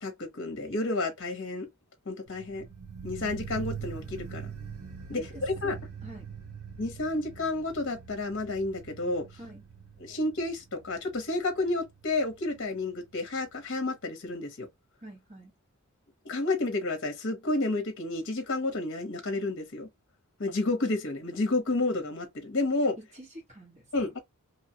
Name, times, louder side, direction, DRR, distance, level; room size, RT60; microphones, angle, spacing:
voice 1, 0.0-1.7 2.1-2.6 3.0-4.5 5.1-5.8 6.8-9.3 10.0-14.7 16.2-19.9 20.4-23.0 23.9-24.2, left 2 dB, 60° left, 0.9 m, -30 dB
sound 1, 2.3-13.3 13.5-13.6, right 6 dB, 80° right, 0.9 m, -43 dB
voice 2, 5.1-5.7 6.0-6.3 9.4-9.6 15.0-15.5 23.0-23.9, right 1 dB, 35° right, 1.3 m, -46 dB
2.8 x 2.2 x 2.8 m
head